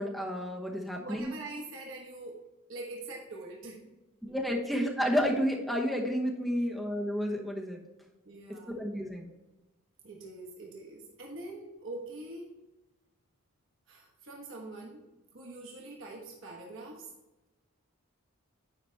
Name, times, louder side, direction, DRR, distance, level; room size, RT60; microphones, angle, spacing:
voice 1, 0.0-1.3 4.2-7.8 8.7-9.3, equal, ahead, -1 dB, 0.9 m, -31 dB
voice 2, 1.0-2.4 2.7-3.9 8.2-8.8 10.0-12.5 13.9-15.0 15.3-17.1, right 2 dB, 60° right, -1 dB, 1.1 m, -44 dB
9.0 x 5.0 x 3.3 m, 1.0 s
head